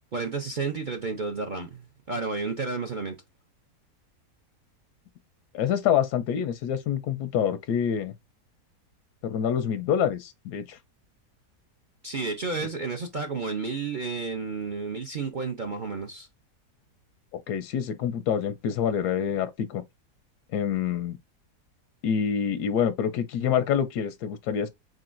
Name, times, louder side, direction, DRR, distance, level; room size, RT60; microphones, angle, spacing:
voice 1, 0.1-3.1 12.0-16.3, right 4 dB, 55° right, 0.5 m, -31 dB
voice 2, 5.5-8.1 9.2-10.8 17.5-19.8 20.5-21.2 22.0-24.7, left 8 dB, 85° left, 1.2 m, -26 dB
4.6 x 3.9 x 2.5 m
omnidirectional pair, 1.7 m